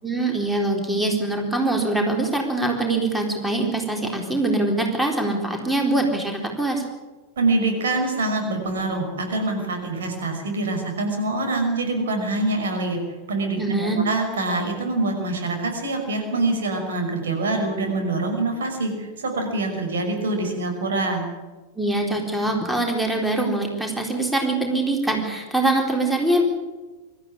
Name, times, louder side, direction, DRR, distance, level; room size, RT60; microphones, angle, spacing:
voice 1, 0.0-6.8 13.6-14.0 21.8-26.4, right 2 dB, 5° right, 2 dB, 4.0 m, -23 dB
voice 2, 7.4-13.0 13.3-21.2, right 2 dB, 65° right, 3 dB, 5.8 m, -25 dB
25.0 x 13.5 x 9.9 m, 1.2 s
figure-of-eight pair, 90°, 0 cm